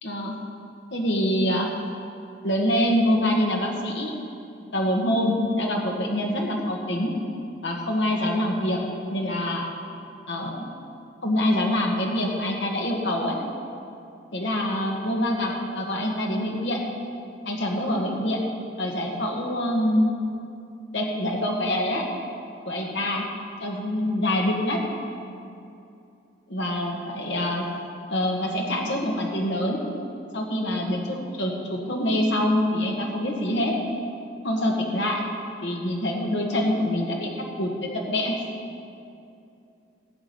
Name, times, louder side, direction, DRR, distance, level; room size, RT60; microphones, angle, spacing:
voice 1, 0.0-0.3 0.9-1.7 2.4-4.1 4.7-7.1 7.6-8.8 9.1-9.7 10.3-10.7 11.2-13.4 14.3-16.8 17.5-18.4 18.8-20.0 20.9-22.0 22.6-23.2 23.6-24.8 26.5-27.6 28.1-29.8 30.3-33.8 34.4-35.2 35.6-38.4, left 1 dB, 70° left, 0 dB, 1.8 m, -25 dB
15.0 x 5.0 x 8.7 m, 2.7 s
head